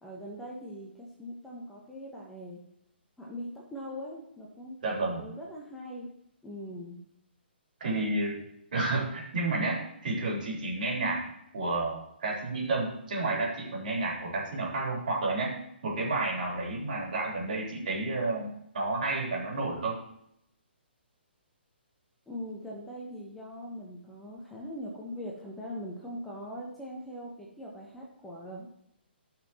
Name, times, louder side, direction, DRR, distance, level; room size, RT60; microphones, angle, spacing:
voice 1, 0.0-2.6 3.2-6.1 6.4-7.0 22.3-28.7, equal, 5° left, -4 dB, 1.3 m, -41 dB
voice 2, 4.8-5.2 7.8-8.3 8.7-11.2 11.5-15.5 15.8-20.0, right 2 dB, 50° right, -3 dB, 3.8 m, -31 dB
15.5 x 5.9 x 3.1 m, 0.76 s
figure-of-eight pair, 130°, 6 cm